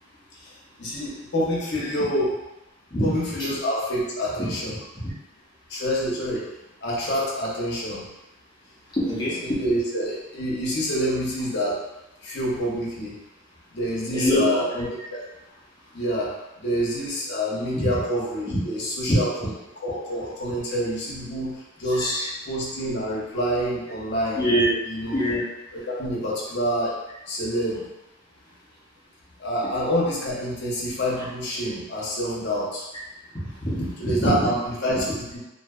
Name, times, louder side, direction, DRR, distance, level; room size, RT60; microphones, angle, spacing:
voice 1, 0.3-2.3 3.0-4.8 5.7-6.5 6.8-8.0 9.4-11.8 12.2-13.1 13.7-15.2 15.9-19.5 19.8-22.2 22.4-24.4 24.8-25.2 25.7-27.0 27.3-27.8 29.4-32.9 34.0-35.4, equal, 55° left, -5 dB, 0.7 m, -27 dB
voice 2, 9.0-9.6 14.1-14.5 14.7-14.9 17.7-17.9 18.5-18.6 19.1-19.2 22.0-22.3 24.4-24.8 25.1-25.4 33.6-34.4, equal, 20° left, -8 dB, 0.6 m, -24 dB
2.6 x 2.2 x 2.3 m, 0.98 s
head